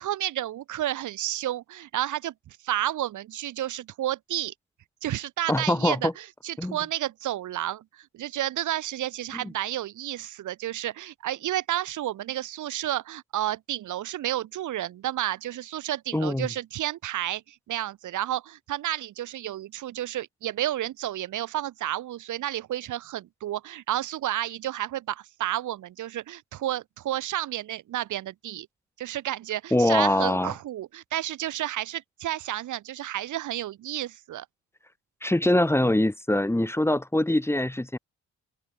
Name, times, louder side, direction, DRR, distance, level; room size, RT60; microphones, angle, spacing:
voice 1, 0.0-4.5 5.0-28.7 29.0-34.5, right 13 dB, 80° right, 4.0 m, -31 dB
voice 2, 5.5-6.1 6.6-6.8 16.1-16.5 29.7-30.5 35.2-38.0, left 1 dB, 10° left, 2.4 m, -23 dB
cardioid pair, 90°, 30 cm